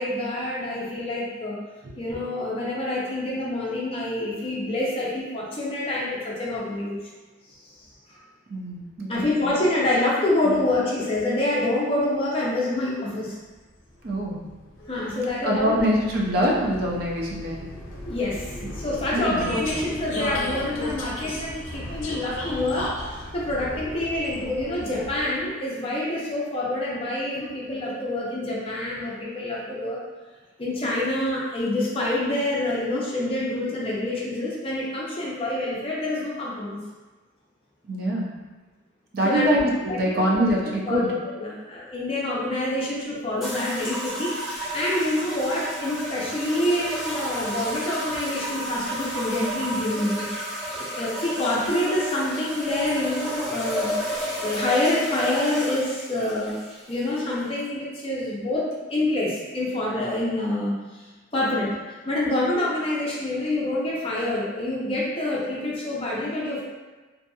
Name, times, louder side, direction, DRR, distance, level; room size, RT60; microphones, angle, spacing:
voice 1, 0.0-1.6 2.0-7.0 7.6-7.7 9.1-13.4 14.9-15.8 18.1-30.0 30.6-36.8 39.2-39.6 39.9-40.4 40.9-50.2 50.8-56.6 56.9-60.7 61.3-61.7 62.0-66.7, left 1 dB, 30° left, -5 dB, 0.5 m, -27 dB
voice 2, 8.5-9.5 10.5-10.6 14.0-14.4 15.4-17.7 19.1-19.5 37.9-38.3 39.1-41.1, equal, 50° right, -3 dB, 0.4 m, -24 dB
Vehicle, 13.7-25.6, left 1 dB, 80° left, 0.5 m, -35 dB
sound 1, 43.4-57.7, right 1 dB, ahead, 0.9 m, -32 dB
2.7 x 2.6 x 2.2 m, 1.2 s
head